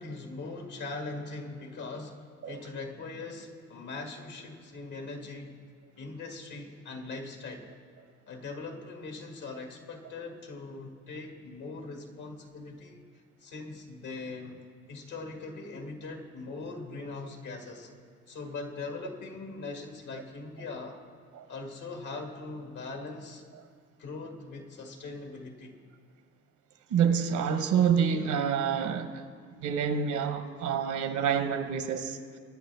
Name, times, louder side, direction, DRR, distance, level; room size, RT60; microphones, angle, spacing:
voice 1, 0.0-5.6 6.0-7.7 8.3-13.0 13.4-17.9 18.3-21.0 21.5-23.4 24.0-25.7, left 3 dB, 80° left, 2.0 m, -41 dB
voice 2, 26.9-29.3 29.6-32.2, right 7 dB, 75° right, 1.0 m, -27 dB
21.5 x 9.4 x 3.4 m
cardioid pair, 90°, 30 cm